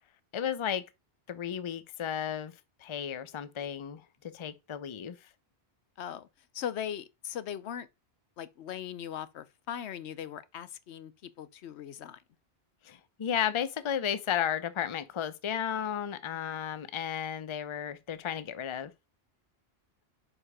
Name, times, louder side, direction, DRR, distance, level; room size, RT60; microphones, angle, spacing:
voice 1, 0.3-0.8 1.3-2.5 2.8-5.2 12.8-18.9, left 9 dB, 35° left, 0.5 m, -33 dB
voice 2, 6.0-7.9 8.4-12.2, left 9 dB, 85° left, 0.9 m, -39 dB
5.0 x 4.9 x 4.8 m
omnidirectional pair, 1.1 m